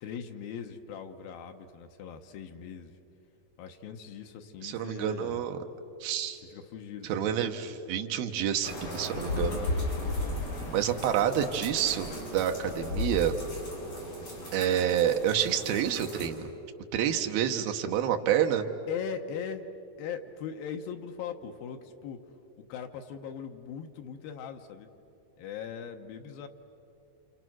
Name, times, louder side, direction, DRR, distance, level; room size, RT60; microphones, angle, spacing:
voice 1, 0.0-2.9 3.6-5.4 6.5-7.4 9.3-10.4 18.9-19.7 20.0-22.2 22.7-24.9 25.4-26.5, left 7 dB, 70° left, 5 dB, 2.7 m, -40 dB
voice 2, 4.6-5.6 6.0-6.4 7.1-9.6 10.7-13.3 14.5-16.5 16.9-18.7, right 9 dB, 70° right, 5 dB, 2.9 m, -28 dB
sound 1, 8.6-16.3, left 2 dB, 45° left, 6.6 m, -35 dB
29.5 x 27.5 x 6.2 m, 2.9 s
omnidirectional pair, 4.7 m